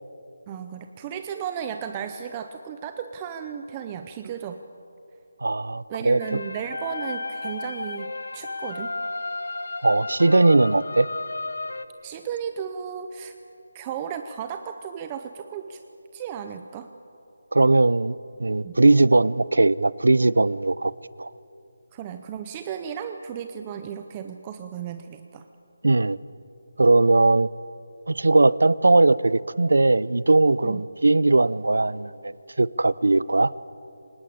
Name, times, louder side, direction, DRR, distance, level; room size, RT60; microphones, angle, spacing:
voice 1, 0.5-4.6 5.9-8.9 12.0-13.4 13.7-15.8 16.1-16.9 18.6-18.7 21.9-25.5 30.6-30.9, right 8 dB, 15° right, 8 dB, 0.6 m, -34 dB
voice 2, 5.4-6.4 9.8-11.1 17.5-20.9 21.2-21.3 25.8-26.2 26.8-27.5 28.1-33.5, right 2 dB, 85° right, 19 dB, 0.7 m, -19 dB
sound 1, 6.2-11.9, left 3 dB, 80° left, 1.4 m, -33 dB
25.5 x 19.0 x 8.6 m, 2.7 s
figure-of-eight pair, 175°, 0 cm